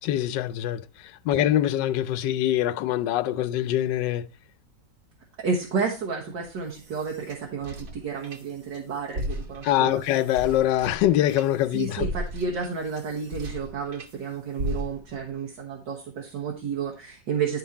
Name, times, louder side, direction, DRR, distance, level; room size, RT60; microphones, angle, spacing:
voice 1, 0.0-4.3 9.6-12.1, left 12 dB, 85° left, 1.2 m, -24 dB
voice 2, 5.4-10.0 11.7-17.6, right 5 dB, 80° right, 2.0 m, -31 dB
sound 1, 6.4-8.8 9.1-14.1 14.6-15.3, equal, 55° right, 1.7 m, -36 dB
11.5 x 4.0 x 4.2 m
omnidirectional pair, 1.9 m